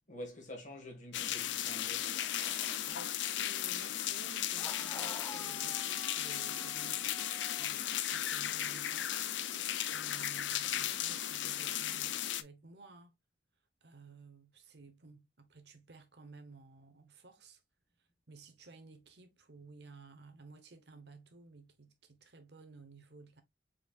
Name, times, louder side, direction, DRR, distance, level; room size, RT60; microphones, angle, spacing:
voice 1, 0.1-2.1, left 1 dB, 40° left, 1.7 m, -47 dB
sound 1, 1.1-12.4, left 11 dB, 75° left, 0.5 m, -36 dB
sound 2, 2.1-2.9 4.6-7.7, left 2 dB, 15° left, 0.5 m, -49 dB
voice 2, 2.7-7.8 8.1-9.2 9.9-13.1 13.8-17.6 18.3-23.4, right 3 dB, 60° right, 1.0 m, -55 dB
4.7 x 4.5 x 2.4 m
head